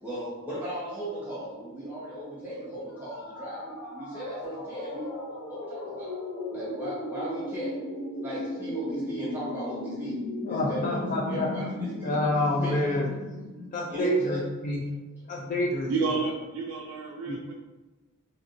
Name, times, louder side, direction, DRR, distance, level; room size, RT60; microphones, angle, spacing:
voice 1, 0.0-6.1 6.5-7.8 8.1-10.1 10.5-13.0 13.9-14.4, right 1 dB, 10° right, -9 dB, 1.1 m, -36 dB
sound 1, 2.9-14.7, left 1 dB, 85° left, 0.6 m, -37 dB
voice 2, 10.5-11.5 12.0-13.1 13.7-14.9 15.3-16.2 17.3-17.4, left 1 dB, 35° left, -2 dB, 0.3 m, -28 dB
voice 3, 15.9-17.5, right 4 dB, 75° right, -1 dB, 0.4 m, -30 dB
3.5 x 2.8 x 2.6 m, 1.2 s
head